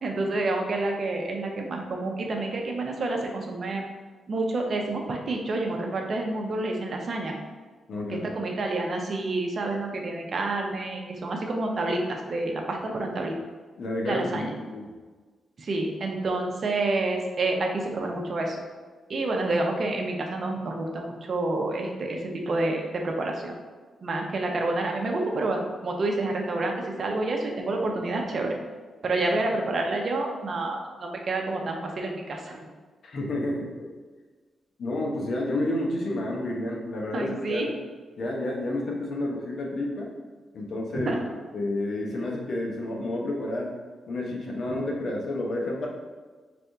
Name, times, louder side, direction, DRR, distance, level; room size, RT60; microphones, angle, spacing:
voice 1, 0.0-3.8 4.3-7.4 8.1-13.4 14.1-14.5 15.6-18.6 19.1-23.5 24.0-28.5 29.0-32.7 37.1-37.7 41.1-41.2, right 2 dB, 50° right, 1 dB, 0.7 m, -28 dB
voice 2, 7.9-8.3 13.8-14.9 33.0-33.9 34.8-37.6 38.2-40.1 40.5-41.1 41.5-43.7 44.1-45.9, left 1 dB, 60° left, -2 dB, 0.8 m, -30 dB
3.4 x 2.6 x 4.5 m, 1.4 s
cardioid pair, 95°, 0 cm